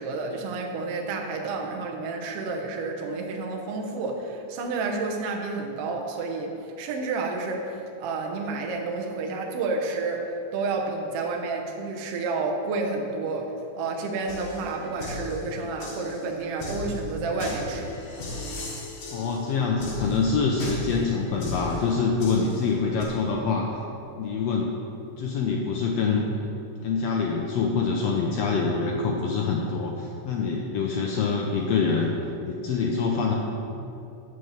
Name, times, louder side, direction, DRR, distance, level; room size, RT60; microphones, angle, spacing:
voice 1, 0.0-18.0, right 3 dB, 70° right, 1 dB, 1.5 m, -30 dB
sound 1, 14.3-23.0, left 1 dB, 70° left, 2.9 m, -36 dB
voice 2, 19.1-23.6 24.2-24.7 25.2-26.2 26.8-32.1 32.4-33.3, left 5 dB, 85° left, 0 dB, 1.4 m, -25 dB
6.7 x 6.4 x 7.1 m, 2.8 s
omnidirectional pair, 3.7 m